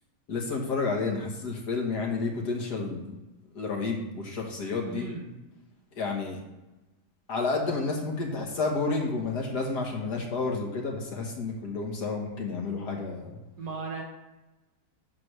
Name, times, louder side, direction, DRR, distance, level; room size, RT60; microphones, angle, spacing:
voice 1, 0.3-3.1 3.5-5.1 5.9-6.4 7.3-13.4, left 3 dB, 75° left, 0 dB, 1.8 m, -30 dB
voice 2, 4.9-5.3 13.6-14.0, right 4 dB, 65° right, -2 dB, 2.1 m, -36 dB
8.4 x 3.3 x 6.1 m, 1.1 s
omnidirectional pair, 1.8 m